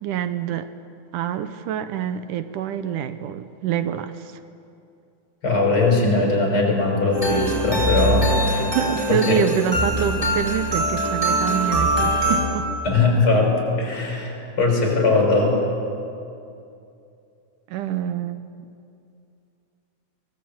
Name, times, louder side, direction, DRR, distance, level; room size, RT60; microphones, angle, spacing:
voice 1, 0.0-0.8 1.1-4.4 8.5-12.7 17.7-18.5, right 9 dB, 80° right, 11 dB, 2.3 m, -26 dB
voice 2, 5.4-8.3 9.1-9.4 12.8-15.6, left 3 dB, 40° left, 0 dB, 6.7 m, -20 dB
sound 1, 7.1-12.4, right 1 dB, 5° right, 5.8 m, -22 dB
24.0 x 21.0 x 8.7 m, 2.6 s
omnidirectional pair, 3.7 m